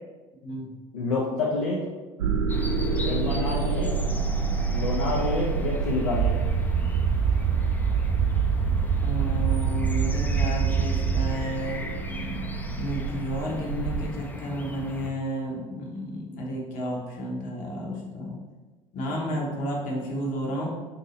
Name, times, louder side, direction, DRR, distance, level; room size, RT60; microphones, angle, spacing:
voice 1, 0.9-1.8 3.0-4.0 4.7-6.4, left 3 dB, 80° left, -4 dB, 0.5 m, -28 dB
sound 1, 2.2-14.1, right 5 dB, 80° right, 0.4 m, -29 dB
sound 2, 2.5-15.1, left 2 dB, 10° left, 0.4 m, -38 dB
sound 3, 6.1-11.3, right 7 dB, 40° right, 0.6 m, -25 dB
voice 2, 9.0-11.9 12.8-18.4 18.9-20.7, equal, 50° left, -2 dB, 1.0 m, -32 dB
2.7 x 2.7 x 4.0 m, 1.2 s
hypercardioid pair, 65°, 17 cm